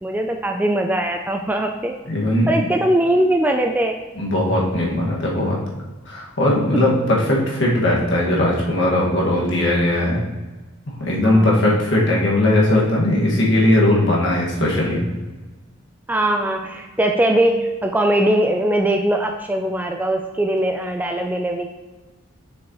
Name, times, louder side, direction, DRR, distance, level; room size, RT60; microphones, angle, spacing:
voice 1, 0.0-2.0 2.5-4.0 6.7-6.8 11.2-11.8 16.1-21.7, right 1 dB, 10° right, 4 dB, 0.3 m, -21 dB
voice 2, 2.1-2.6 4.2-5.6 6.1-10.2 11.0-15.0, left 1 dB, 60° left, -4 dB, 1.8 m, -18 dB
6.9 x 6.4 x 3.0 m, 1.2 s
head